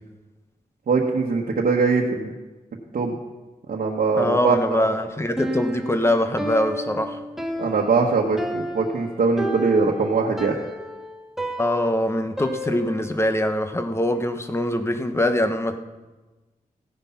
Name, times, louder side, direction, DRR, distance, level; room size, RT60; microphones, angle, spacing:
voice 1, 0.9-2.3 2.9-3.1 3.7-4.8 7.6-10.5, right 4 dB, 75° right, -2 dB, 1.4 m, -22 dB
voice 2, 4.2-7.2 11.6-15.8, left 1 dB, 15° left, 7 dB, 1.1 m, -23 dB
Piano, 5.4-13.2, equal, ahead, 1.5 m, -32 dB
15.5 x 9.8 x 5.8 m, 1.2 s
wide cardioid pair, 100°, 15 cm